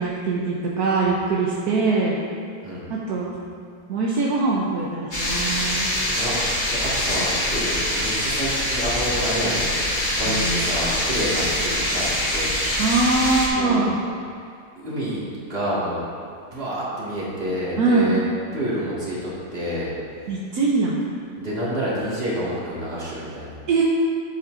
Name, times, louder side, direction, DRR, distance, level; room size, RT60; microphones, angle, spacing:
voice 1, 0.0-2.2 2.9-3.4 3.9-5.9 10.3-10.8 12.8-14.0 17.8-18.2 20.3-21.0 23.7-23.8, right 3 dB, 70° right, -4 dB, 1.3 m, -22 dB
sound 1, 5.1-13.5, left 1 dB, 30° left, 1.6 m, -24 dB
voice 2, 6.7-12.6 13.5-13.9 14.8-16.0 16.5-18.2 18.5-19.9 21.4-23.5, equal, 35° right, -8 dB, 2.2 m, -28 dB
12.0 x 7.3 x 2.6 m, 2.3 s
omnidirectional pair, 1.7 m